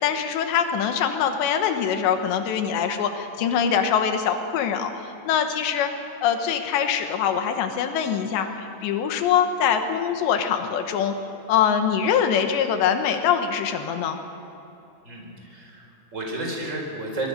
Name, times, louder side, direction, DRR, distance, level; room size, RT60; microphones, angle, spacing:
voice 1, 0.0-5.9 6.2-11.1 11.5-14.2, left 8 dB, 85° left, 6 dB, 3.4 m, -23 dB
voice 2, 15.0-17.3, right 2 dB, 15° right, 1 dB, 4.3 m, -32 dB
24.5 x 22.5 x 6.6 m, 2.9 s
omnidirectional pair, 5.0 m